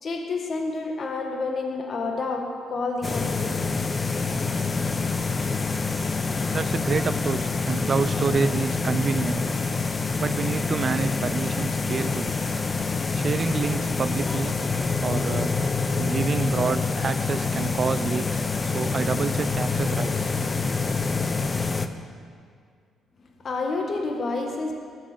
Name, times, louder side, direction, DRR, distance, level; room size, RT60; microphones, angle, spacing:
voice 1, 0.0-3.6 5.2-5.3 23.4-24.7, left 3 dB, 50° left, 2 dB, 1.9 m, -29 dB
sound 1, 3.0-21.9, left 4 dB, 30° left, 0.8 m, -26 dB
voice 2, 6.5-9.4 10.2-12.3 13.1-14.6 15.0-15.6 16.0-20.3, right 5 dB, 45° right, 14 dB, 0.6 m, -28 dB
19.5 x 7.5 x 7.0 m, 2.2 s
cardioid pair, 90°, 0 cm